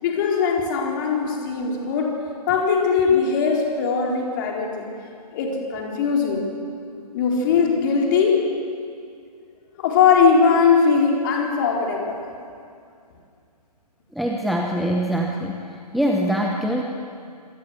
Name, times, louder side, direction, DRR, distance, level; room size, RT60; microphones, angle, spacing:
voice 1, 0.0-2.2 2.5-4.9 5.3-6.4 6.8-8.5 9.8-12.3, left 5 dB, 30° left, 0 dB, 4.2 m, -20 dB
voice 2, 14.1-16.8, equal, ahead, 0 dB, 0.8 m, -24 dB
25.5 x 18.5 x 8.1 m, 2.4 s
figure-of-eight pair, 135°, 21 cm